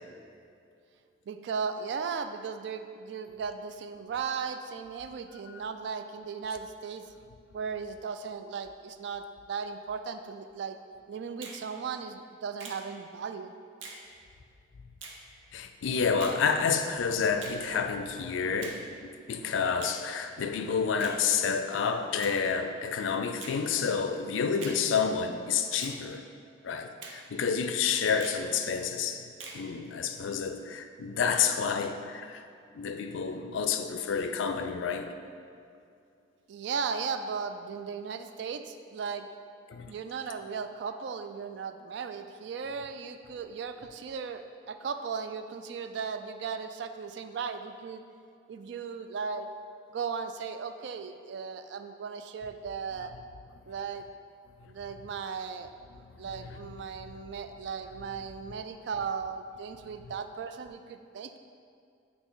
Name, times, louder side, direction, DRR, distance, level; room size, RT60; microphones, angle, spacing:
voice 1, 1.3-7.1 7.5-10.8 11.1-13.5 36.5-39.3 39.9-48.0 48.5-49.5 49.9-53.1 53.7-54.1 54.7-55.7 56.2-61.4, right 6 dB, 70° right, 9 dB, 0.3 m, -36 dB
Finger snapping, 11.4-11.6 12.6-12.8 13.8-14.0 15.0-15.2 16.2-16.4 17.4-17.6 18.6-18.8 19.8-20.0 21.0-21.2 22.2-22.4 23.4-23.6 24.6-24.8 25.8-26.0 27.0-27.2 28.2-28.4 29.4-29.6, right 3 dB, 85° right, 0.7 m, -43 dB
voice 2, 15.5-26.2 26.6-29.3 29.5-32.4 32.7-35.1 39.7-39.9 55.9-56.6, left 6 dB, 90° left, 7 dB, 0.4 m, -29 dB
8.2 x 3.0 x 3.9 m, 2.5 s
head